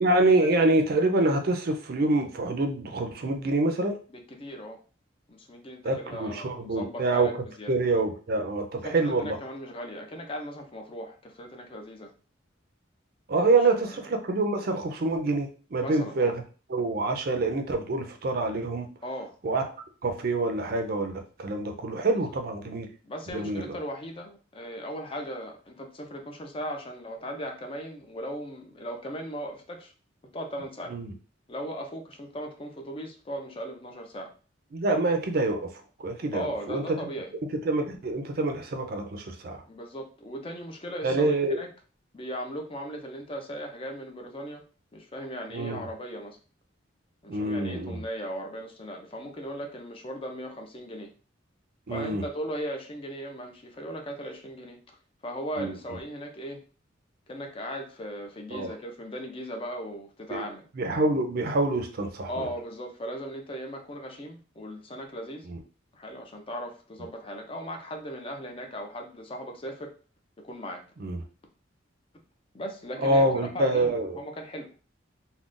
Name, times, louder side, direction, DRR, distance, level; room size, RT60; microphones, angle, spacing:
voice 1, 0.0-4.0 5.8-9.4 13.3-16.4 16.7-18.9 19.4-19.6 20.0-22.9 23.3-23.8 30.9-31.1 34.7-35.7 36.0-37.0 37.6-39.6 41.0-41.6 45.5-45.8 47.3-48.0 51.9-52.2 55.6-55.8 58.5-58.7 60.3-60.4 60.8-62.5 65.5-65.6 71.0-71.2 73.0-74.2, right 2 dB, 50° right, 5 dB, 0.5 m, -26 dB
voice 2, 4.1-4.8 5.3-7.7 8.8-12.1 15.8-16.3 19.0-19.3 23.0-29.9 30.3-30.9 31.5-34.3 36.3-37.3 39.7-41.7 42.1-44.6 44.9-46.4 47.2-51.1 51.9-54.8 55.2-56.6 57.3-60.6 62.3-65.5 65.9-69.9 70.4-70.8 72.5-73.2 73.5-74.7, equal, 30° left, 3 dB, 0.4 m, -38 dB
3.7 x 2.1 x 2.4 m, 0.37 s
head